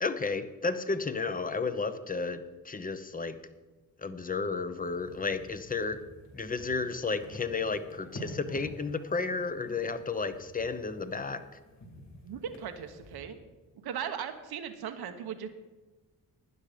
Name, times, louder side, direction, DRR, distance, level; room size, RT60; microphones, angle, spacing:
voice 1, 0.0-3.4 4.0-6.0 6.3-11.4, left 4 dB, 20° left, 11 dB, 0.8 m, -32 dB
sound 1, 4.8-13.2, equal, 45° left, 5.0 m, -49 dB
voice 2, 12.2-13.4 13.8-15.5, right 8 dB, 80° right, 7 dB, 1.1 m, -38 dB
12.0 x 10.0 x 5.0 m, 1.2 s
cardioid pair, 100°, 37 cm